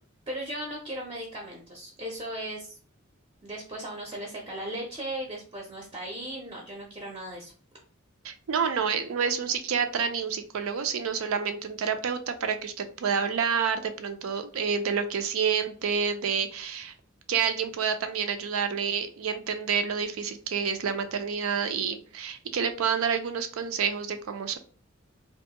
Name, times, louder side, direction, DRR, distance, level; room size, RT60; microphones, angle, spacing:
voice 1, 0.3-2.8 3.4-7.5, right 1 dB, 25° right, 0 dB, 0.6 m, -37 dB
voice 2, 8.2-16.9 17.3-24.6, right 6 dB, 85° right, 8 dB, 0.4 m, -28 dB
2.5 x 2.3 x 2.8 m, 0.40 s
head